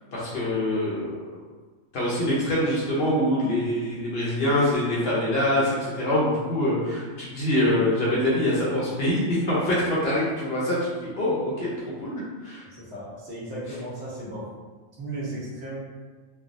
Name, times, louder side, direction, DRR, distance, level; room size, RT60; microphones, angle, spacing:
voice 1, 0.1-1.4 1.9-11.7 12.0-12.6, left 1 dB, 55° left, -7 dB, 0.9 m, -24 dB
voice 2, 12.7-14.4 15.0-15.8, right 1 dB, 60° right, -8 dB, 1.2 m, -35 dB
3.3 x 2.3 x 2.5 m, 1.4 s
omnidirectional pair, 1.3 m